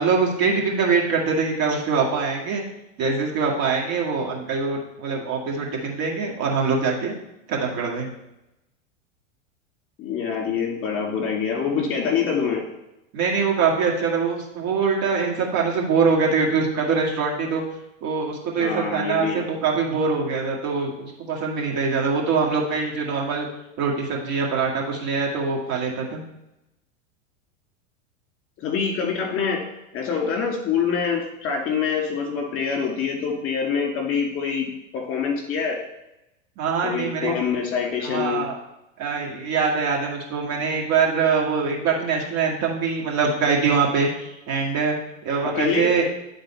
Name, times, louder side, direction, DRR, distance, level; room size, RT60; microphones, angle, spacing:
voice 1, 0.0-2.6 3.0-7.1 7.5-8.1 13.1-17.6 18.0-23.5 23.8-26.2 36.6-37.3 38.0-38.5 39.0-45.0 45.2-46.0, right 5 dB, 45° right, -1 dB, 2.0 m, -23 dB
voice 2, 10.0-12.7 18.6-19.5 28.6-29.6 29.9-35.8 36.8-38.4 45.5-45.9, left 6 dB, 35° left, 0 dB, 2.2 m, -25 dB
9.6 x 4.0 x 4.4 m, 0.89 s
hypercardioid pair, 110°, 38 cm